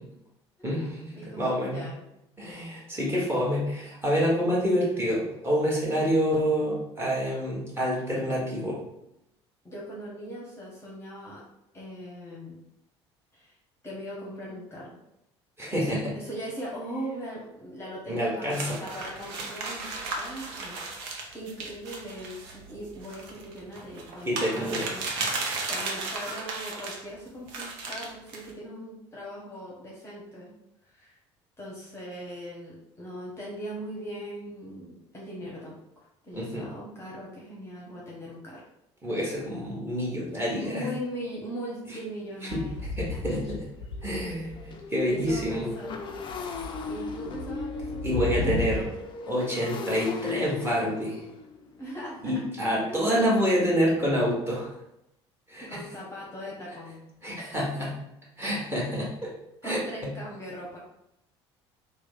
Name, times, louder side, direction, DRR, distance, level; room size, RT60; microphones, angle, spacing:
voice 1, 0.6-1.8 2.4-8.8 15.6-16.1 18.1-18.8 24.3-24.9 36.3-36.7 39.0-40.9 42.5-42.6 43.0-43.7 44.0-45.7 48.0-48.8 49.3-51.2 52.2-54.7 55.5-55.8 57.2-58.0 58.4-59.3 59.6-60.1, equal, 15° right, -5 dB, 1.4 m, -27 dB
voice 2, 1.1-2.0 9.6-11.4 11.7-12.6 13.3-13.5 13.8-15.0 15.7-19.9 20.1-25.1 25.7-30.5 30.8-31.2 31.6-38.6 40.5-42.8 45.1-46.0 46.8-48.9 51.8-52.4 52.9-53.1 55.6-57.0 59.6-60.8, equal, 20° left, -4 dB, 1.0 m, -40 dB
sound 1, 18.5-27.0 27.5-28.5, right 3 dB, 65° right, 0.6 m, -35 dB
Motorcycle, 42.1-42.2 42.7-42.8 43.1-54.7, left 5 dB, 35° left, 0.5 m, -39 dB
sound 2, 42.5-44.8 45.1-48.8, left 3 dB, 80° left, 0.6 m, -34 dB
3.1 x 2.2 x 3.8 m, 0.83 s
figure-of-eight pair, 60°, 14 cm